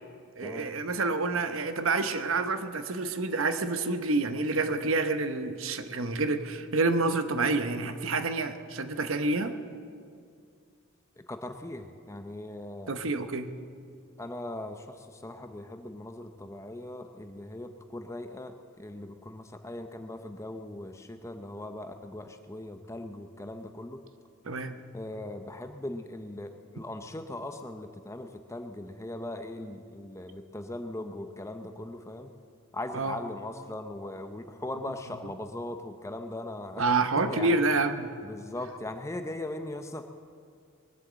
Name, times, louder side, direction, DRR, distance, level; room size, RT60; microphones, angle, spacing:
voice 1, 0.4-9.6 12.9-13.5 24.5-24.8 32.9-33.2 36.8-38.1, right 3 dB, 70° right, 9 dB, 0.9 m, -28 dB
voice 2, 11.3-12.9 14.2-24.0 24.9-32.3 32.7-36.8 37.3-37.6 38.2-40.0, left 1 dB, 15° left, 7 dB, 0.6 m, -39 dB
21.5 x 7.7 x 7.5 m, 2.2 s
head